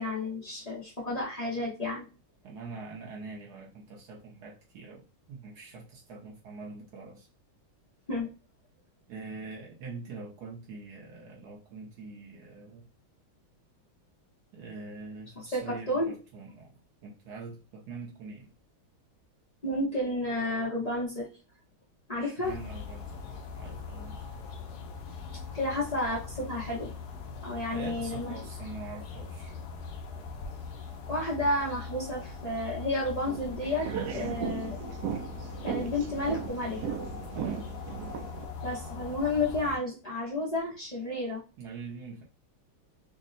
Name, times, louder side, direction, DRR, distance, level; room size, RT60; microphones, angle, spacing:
voice 1, 0.0-2.1 8.1-8.3 15.4-16.1 19.6-21.3 22.1-22.5 25.5-26.9 27.4-28.3 31.1-34.8 35.6-37.0 38.6-41.4, left 2 dB, 55° left, -6 dB, 0.4 m, -31 dB
voice 2, 2.4-7.3 9.1-12.9 14.5-18.5 22.2-24.3 27.7-29.5 34.1-34.4 37.3-37.7 41.6-42.2, right 4 dB, 65° right, -2 dB, 1.0 m, -44 dB
sound 1, 22.4-39.8, left 5 dB, 80° left, 0.9 m, -41 dB
sound 2, 33.2-38.5, right 8 dB, 90° right, 0.8 m, -37 dB
3.5 x 2.1 x 3.8 m, 0.32 s
omnidirectional pair, 2.3 m